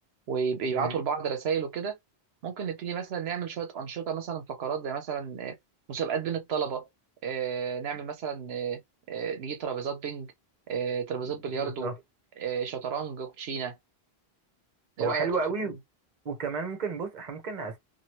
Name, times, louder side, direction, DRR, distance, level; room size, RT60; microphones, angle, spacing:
voice 1, 0.3-2.0 2.4-5.6 5.9-6.9 7.2-8.8 9.1-10.3 10.7-11.9 12.4-13.8 15.0-15.3, right 6 dB, 80° right, 0.9 m, -32 dB
voice 2, 11.5-12.0 15.0-15.7 16.2-17.8, right 4 dB, 45° right, 1.0 m, -32 dB
3.0 x 2.5 x 2.9 m
omnidirectional pair, 1.0 m